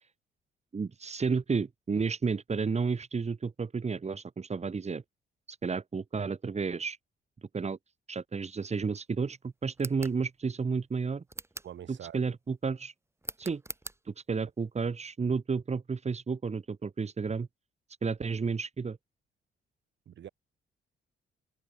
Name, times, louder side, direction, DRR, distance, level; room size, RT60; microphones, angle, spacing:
voice 1, 0.7-5.0 5.5-7.0 7.5-7.8 8.1-11.2 12.1-12.9 13.4-13.6 14.1-17.5 18.0-19.0, right 5 dB, 35° right, 4.7 m, -32 dB
sound 1, 9.7-10.2 11.3-11.8 13.2-14.0, right 2 dB, 15° right, 2.3 m, -42 dB
voice 2, 11.6-12.2 20.1-20.3, right 10 dB, 65° right, 7.1 m, -44 dB
open air
cardioid pair, 90°, 20 cm